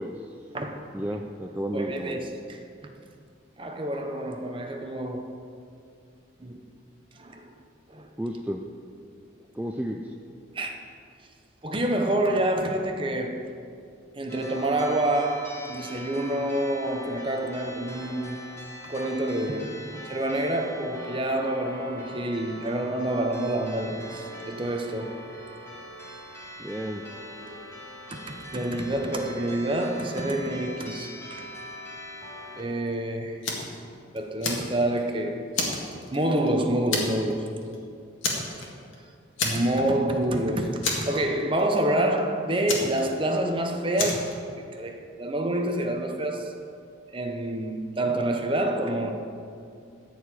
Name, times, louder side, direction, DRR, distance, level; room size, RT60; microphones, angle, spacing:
voice 1, 0.0-0.3 0.9-2.2 8.2-8.6 9.5-10.1 26.6-27.0, equal, 10° right, 1 dB, 0.4 m, -32 dB
voice 2, 0.5-1.2 1.7-2.9 3.6-5.4 6.4-6.6 7.2-7.5 7.9-8.1 10.5-10.8 11.6-13.4 14.1-18.4 18.8-25.2 27.4-27.6 28.1-31.5 32.6-33.4 34.1-35.8 36.1-37.5 39.4-46.5 47.1-49.1, right 1 dB, 25° right, 4 dB, 0.9 m, -28 dB
sound 1, 14.3-32.6, equal, 15° left, 2.2 m, -42 dB
Fire, 33.4-33.8 34.2-35.1 35.5-36.5 36.9-37.3 37.6-37.8 38.2-38.9 39.4-40.0 40.2-40.3 40.8-41.6 42.7-43.5 44.0-44.3, left 3 dB, 80° left, 1.9 m, -29 dB
14.0 x 4.8 x 8.7 m, 2.4 s
head